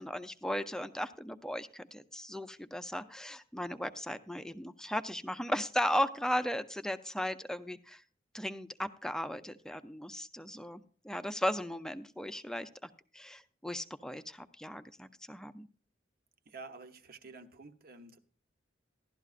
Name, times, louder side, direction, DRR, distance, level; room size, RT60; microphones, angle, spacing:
voice 1, 0.0-8.0 8.3-15.7, equal, 5° left, 0.5 m, -36 dB
voice 2, 16.5-18.2, right 3 dB, 55° right, 0.9 m, -50 dB
16.0 x 12.0 x 2.5 m
head